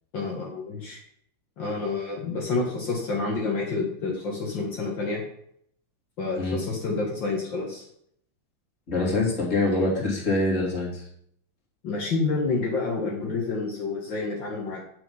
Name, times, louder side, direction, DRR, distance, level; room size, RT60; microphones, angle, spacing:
voice 1, 0.1-1.0 1.6-5.2 6.2-7.8 11.8-14.8, left 3 dB, 65° left, -3 dB, 2.4 m, -28 dB
voice 2, 8.9-11.0, left 2 dB, 35° left, -2 dB, 3.0 m, -25 dB
9.7 x 6.4 x 5.6 m, 0.68 s
omnidirectional pair, 2.2 m